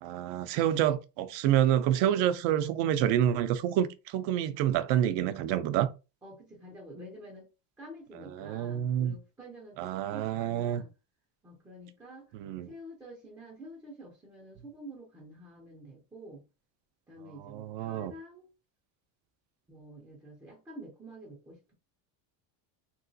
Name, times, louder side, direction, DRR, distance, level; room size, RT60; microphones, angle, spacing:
voice 1, 0.0-5.9 8.2-9.2 9.8-10.8 12.3-12.7 17.4-18.1, right 11 dB, 60° right, 0.5 m, -28 dB
voice 2, 6.2-7.5 7.8-10.9 11.4-12.3 12.7-16.4 17.1-18.5 19.7-21.7, right 1 dB, 5° right, 0.4 m, -48 dB
3.0 x 2.9 x 2.6 m
cardioid pair, 165°, 49 cm